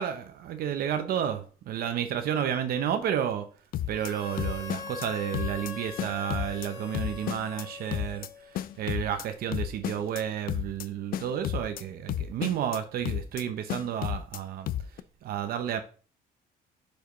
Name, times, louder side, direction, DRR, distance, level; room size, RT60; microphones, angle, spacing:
voice 1, 0.0-3.5 3.9-8.3 8.5-14.7 15.2-15.8, right 9 dB, 65° right, 0.7 m, -31 dB
sound 1, 3.7-4.1 4.4-5.1 5.3-5.7 6.0-6.7 6.9-7.6 7.9-8.3 8.5-9.2 9.5-10.2 10.5-10.9 11.1-11.8 12.1-12.8 13.0-13.4 13.7-14.4 14.7-15.0, left 11 dB, 60° left, 0.4 m, -32 dB
Harmonica, 3.9-8.8, left 4 dB, 20° left, 1.8 m, -42 dB
6.8 x 4.7 x 3.1 m
cardioid pair, 110°, 17 cm